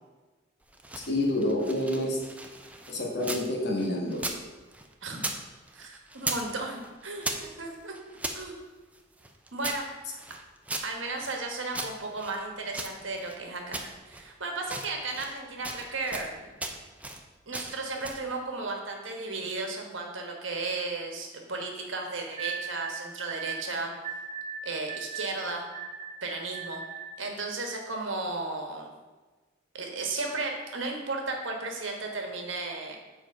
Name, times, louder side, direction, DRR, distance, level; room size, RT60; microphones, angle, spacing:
sound 1, 0.6-3.5 3.8-5.4 5.7-6.5 6.8-8.4 8.9-11.4 11.7-13.4 13.7-14.3 14.6-15.4 15.6-16.3 16.6-17.2 17.5-18.3, right 2 dB, 5° right, 0.5 m, -37 dB
voice 1, 0.9-2.2 2.9-4.3, left 1 dB, 55° left, -1 dB, 1.6 m, -28 dB
voice 2, 5.7-8.0 8.3-8.6 9.5-10.2 10.8-16.5 17.5-23.9 24.6-25.7 26.2-26.8 27.2-28.9 29.7-33.0, right 3 dB, 75° right, 2 dB, 1.3 m, -34 dB
sound 2, 22.4-27.2, right 6 dB, 25° right, 1.0 m, -39 dB
7.1 x 4.6 x 5.4 m, 1.3 s
head